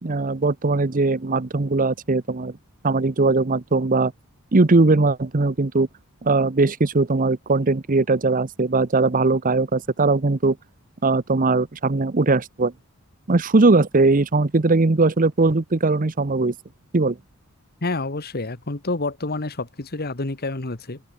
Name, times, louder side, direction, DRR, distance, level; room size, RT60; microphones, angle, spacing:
voice 1, 0.0-2.5 2.8-4.1 4.5-5.9 6.2-10.6 11.0-12.7 13.3-16.5 16.9-17.2, right 3 dB, 40° right, 0.8 m, -20 dB
voice 2, 17.8-21.0, left 2 dB, 45° left, 1.5 m, -28 dB
head